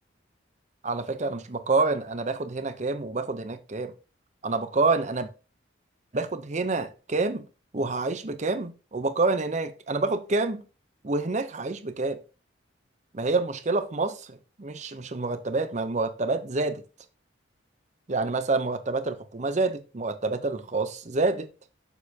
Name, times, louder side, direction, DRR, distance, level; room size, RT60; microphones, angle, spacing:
voice 1, 0.8-3.9 4.4-5.3 6.1-7.4 7.7-10.6 11.0-12.2 13.1-16.8 18.1-21.5, right 3 dB, 35° right, 0.7 m, -27 dB
7.0 x 6.6 x 2.8 m
head